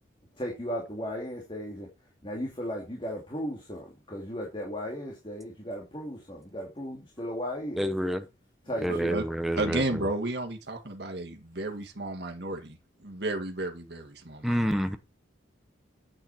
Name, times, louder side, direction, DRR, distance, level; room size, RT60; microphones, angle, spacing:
voice 1, 0.4-1.9 2.2-7.9 8.7-9.2, equal, 25° left, 2.7 m, -36 dB
voice 2, 7.8-8.2 8.8-10.0 14.4-15.0, equal, ahead, 0.8 m, -28 dB
voice 3, 8.9-9.2 9.6-12.8 13.0-14.8, right 2 dB, 55° right, 1.9 m, -33 dB
9.0 x 8.6 x 4.5 m
head